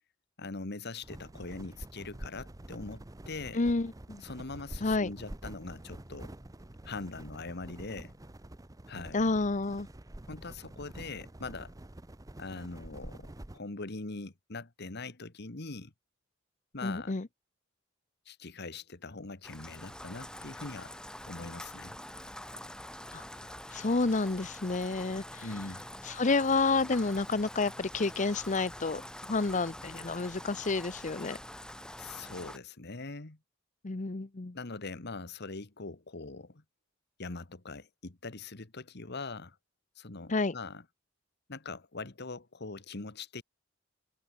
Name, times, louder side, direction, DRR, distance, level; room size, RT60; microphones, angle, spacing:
voice 1, 0.4-3.6 4.2-6.3 6.8-8.1 8.9-9.2 10.3-11.7 12.4-15.9 16.7-17.1 18.2-20.9 21.3-22.0 25.4-25.8 32.0-33.4 34.5-36.6 37.2-39.6 40.0-40.8 41.5-43.4, left 3 dB, 60° left, 1.6 m, -42 dB
sound 1, 1.0-13.6, right 1 dB, 20° right, 0.8 m, -47 dB
voice 2, 3.5-4.2 4.8-5.1 9.1-9.9 16.8-17.3 23.1-23.2 23.7-25.5 26.0-29.0 29.3-31.4 33.8-34.6 40.3-40.5, left 3 dB, 40° left, 0.8 m, -30 dB
Rain, 19.4-32.6, left 1 dB, 5° left, 3.7 m, -45 dB
head